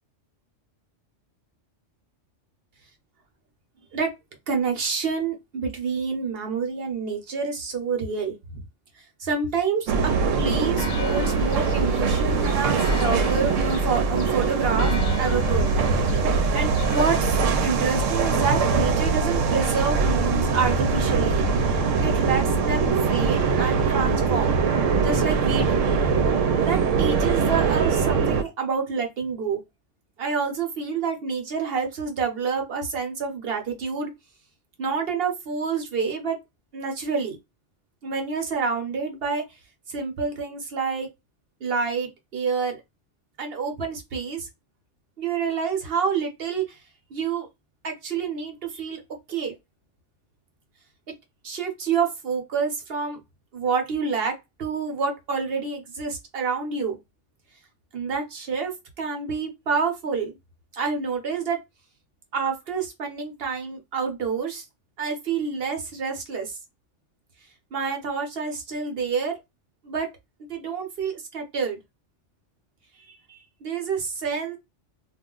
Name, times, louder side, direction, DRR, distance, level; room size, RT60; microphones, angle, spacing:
voice 1, 4.5-8.6 9.0-15.7 16.5-21.4 22.0-24.6 25.0-25.9 26.6-29.6 30.2-34.1 34.8-36.4 36.7-37.4 38.0-39.4 39.9-41.1 41.6-42.8 43.4-44.5 45.2-46.8 47.1-47.5 47.8-49.0 49.3-49.5 51.4-53.2 53.5-54.3 54.6-57.0 57.9-60.4 60.7-61.6 62.3-64.6 65.0-66.6 67.7-69.3 69.8-70.1 70.5-71.8 73.1-74.6, right 5 dB, 55° right, 0.9 m, -28 dB
sound 1, 9.9-28.4, right 4 dB, 85° right, 0.9 m, -22 dB
Church bell, 10.7-17.2, left 6 dB, 70° left, 0.8 m, -38 dB
2.4 x 2.1 x 3.7 m
omnidirectional pair, 1.3 m